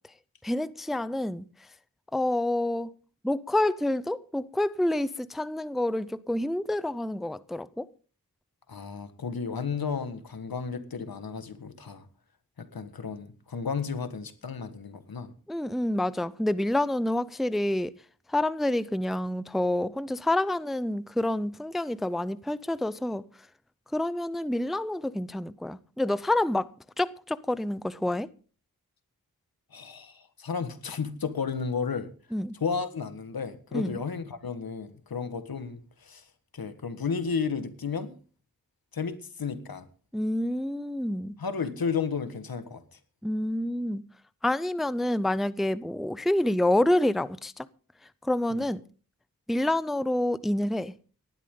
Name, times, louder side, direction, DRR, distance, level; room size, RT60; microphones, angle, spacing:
voice 1, 0.4-1.5 2.1-2.9 3.2-7.9 15.5-17.9 18.3-23.2 23.9-26.7 27.0-28.3 32.3-32.6 33.7-34.0 40.1-41.3 43.2-44.0 44.4-47.7 48.2-48.8 49.5-50.9, left 1 dB, ahead, 0.5 m, -28 dB
voice 2, 8.7-12.1 12.6-15.3 29.7-32.1 32.6-36.2 36.5-38.2 38.9-39.9 41.4-43.0 48.5-48.6, left 5 dB, 75° left, 1.6 m, -33 dB
18.5 x 12.0 x 3.8 m
wide cardioid pair, 70°, 36 cm